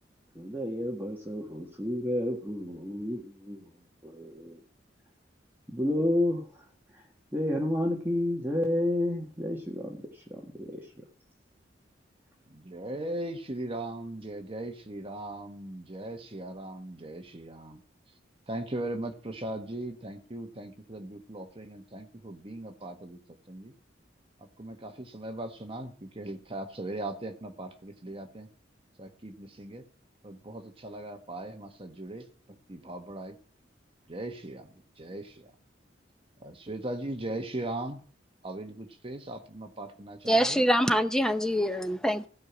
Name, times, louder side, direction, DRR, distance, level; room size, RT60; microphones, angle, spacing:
voice 1, 0.4-3.7 4.0-4.6 5.7-6.6 6.9-7.0 7.3-10.9, left 1 dB, 10° right, 1.7 m, -31 dB
voice 2, 12.5-17.8 18.5-23.7 24.4-28.5 29.0-29.8 30.2-33.4 34.1-35.5 36.4-38.0 38.4-40.6, right 1 dB, 30° right, 1.4 m, -39 dB
voice 3, 40.3-42.3, equal, 5° left, 0.7 m, -25 dB
16.0 x 5.6 x 8.6 m
head